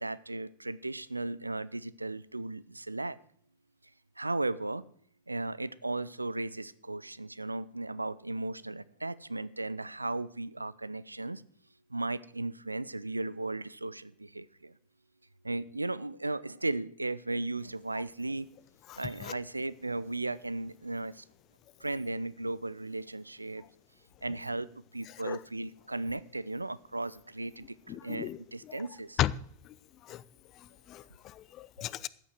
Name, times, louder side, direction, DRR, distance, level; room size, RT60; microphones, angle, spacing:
voice 1, 0.0-3.2 4.2-4.8 5.3-11.4 11.9-14.7 15.4-18.5 19.0-21.2 21.8-23.6 24.2-29.2, right 2 dB, 85° right, 0.4 m, -36 dB
voice 2, 18.9-19.3 25.2-25.4 27.9-28.4 28.7-28.9 29.2-29.3 30.0-30.2 30.9-32.1, left 14 dB, 35° left, 0.4 m, -35 dB
13.5 x 8.4 x 4.7 m
figure-of-eight pair, 90°, 0 cm